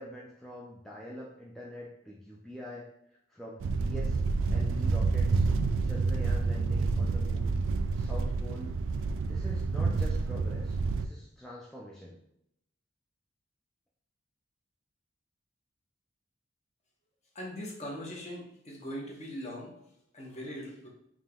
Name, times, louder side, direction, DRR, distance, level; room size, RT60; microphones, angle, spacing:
voice 1, 0.0-2.9 3.3-7.6 8.0-8.7 9.2-12.2, equal, ahead, -4 dB, 0.4 m, -45 dB
sound 1, 3.6-11.1, right 4 dB, 80° right, 0.3 m, -28 dB
voice 2, 17.3-19.7 20.1-20.9, equal, 35° left, -2 dB, 1.0 m, -40 dB
3.6 x 2.8 x 3.7 m, 0.78 s
head